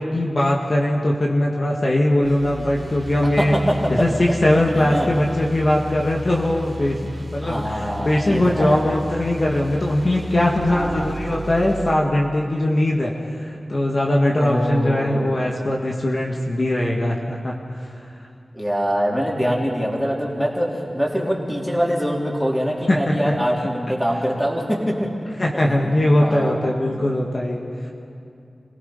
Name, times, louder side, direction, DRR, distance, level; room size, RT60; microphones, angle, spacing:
voice 1, 0.0-3.5 3.9-13.1 13.4-17.5 22.9-23.3 25.4-27.9, left 1 dB, 45° left, -2 dB, 1.9 m, -20 dB
sound 1, 2.2-11.9, equal, 35° right, 3.1 m, -34 dB
voice 2, 3.4-3.9 4.8-5.1 7.4-8.8 10.7-11.2 14.4-15.4 18.5-25.2 25.5-26.6, equal, 5° left, -2 dB, 3.8 m, -24 dB
28.5 x 17.5 x 5.7 m, 2.7 s
wide cardioid pair, 75°, 0 cm